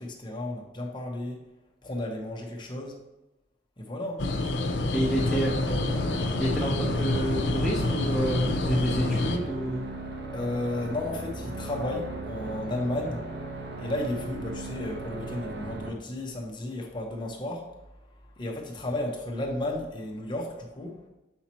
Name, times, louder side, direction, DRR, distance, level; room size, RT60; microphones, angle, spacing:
voice 1, 0.0-1.4 1.8-3.0 3.8-4.3 5.3-5.8 10.3-13.2 13.8-17.7 18.4-21.0, left 1 dB, 25° left, -1 dB, 1.0 m, -33 dB
sound 1, 4.2-9.4, left 2 dB, 80° left, 0.7 m, -27 dB
voice 2, 4.9-5.5 6.3-9.8, right 1 dB, ahead, -6 dB, 0.7 m, -29 dB
sound 2, 5.2-15.9, right 2 dB, 60° right, 1.1 m, -37 dB
7.1 x 5.7 x 3.0 m, 0.97 s
head